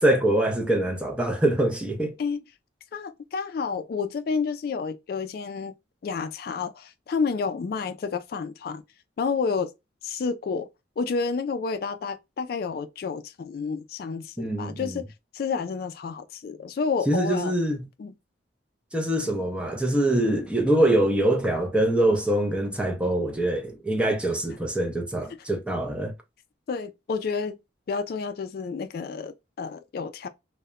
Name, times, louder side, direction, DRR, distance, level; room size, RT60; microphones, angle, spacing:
voice 1, 0.0-2.1 14.4-15.0 17.1-17.9 18.9-26.1, right 1 dB, 5° right, 0.5 m, -24 dB
voice 2, 2.9-5.7 6.0-8.8 9.2-9.7 10.0-10.7 11.0-15.1 15.3-17.5 18.0-18.1 26.7-27.6 27.9-30.3, left 5 dB, 55° left, 0.3 m, -30 dB
2.8 x 2.1 x 2.4 m
head